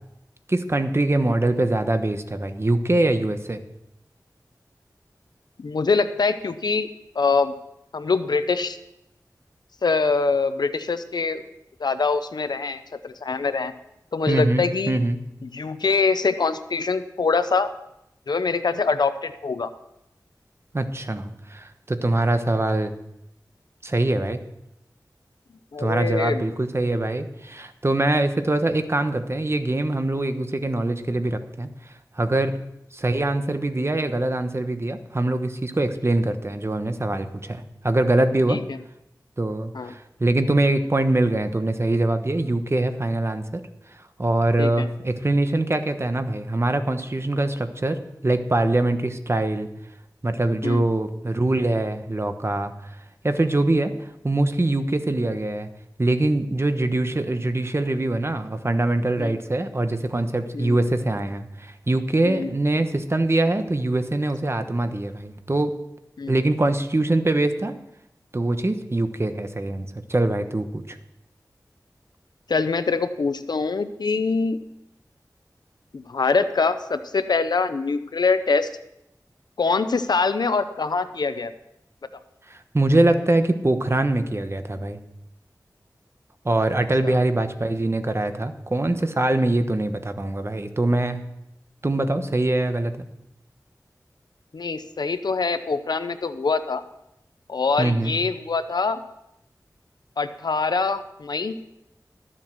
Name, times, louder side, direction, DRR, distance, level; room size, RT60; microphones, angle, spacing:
voice 1, 0.5-3.6 14.3-15.2 20.7-22.9 23.8-24.4 25.8-32.6 32.9-38.6 39.4-43.6 43.9-49.7 50.2-52.7 53.2-55.7 56.0-65.7 66.3-67.7 68.3-71.0 82.5-85.0 86.4-91.2 91.8-93.1 97.8-98.1, right 2 dB, 40° right, 8 dB, 1.1 m, -23 dB
voice 2, 5.6-6.9 7.1-7.5 7.9-8.8 9.8-11.4 11.8-13.7 14.1-15.0 15.4-17.7 18.3-19.7 25.7-26.4 38.5-38.6 39.7-39.9 44.6-44.9 50.6-50.9 59.2-59.4 60.5-60.8 62.2-62.5 66.2-66.3 72.5-74.6 75.9-78.7 79.6-81.5 87.0-87.1 94.5-96.8 97.5-99.0 100.2-101.6, left 4 dB, 85° left, 11 dB, 0.7 m, -24 dB
12.5 x 7.7 x 6.1 m, 0.84 s
wide cardioid pair, 50°, 7 cm